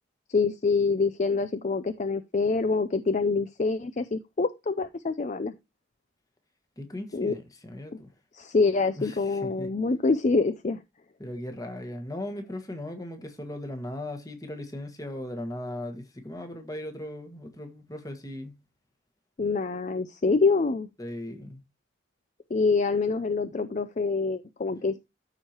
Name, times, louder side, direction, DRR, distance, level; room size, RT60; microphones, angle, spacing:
voice 1, 0.3-5.5 7.1-7.3 8.3-10.8 19.4-20.9 22.5-25.1, left 4 dB, 40° left, 0.5 m, -26 dB
voice 2, 6.8-8.1 9.0-9.7 11.2-18.6 21.0-21.6, left 1 dB, 20° left, 1.4 m, -38 dB
13.5 x 4.7 x 2.9 m
head